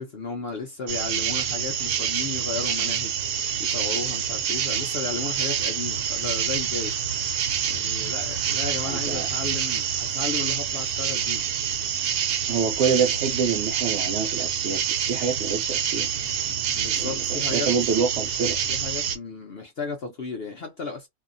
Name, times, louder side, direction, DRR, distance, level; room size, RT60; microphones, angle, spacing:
voice 1, 0.0-3.2 3.6-7.0 7.7-11.4 16.4-17.7 18.7-21.1, left 4 dB, 55° left, 0.7 m, -34 dB
sound 1, 0.9-19.2, right 8 dB, 85° right, 1.2 m, -27 dB
voice 2, 8.8-9.3 12.5-16.1 17.0-18.6, right 6 dB, 65° right, 0.7 m, -27 dB
2.7 x 2.4 x 2.5 m
omnidirectional pair, 1.7 m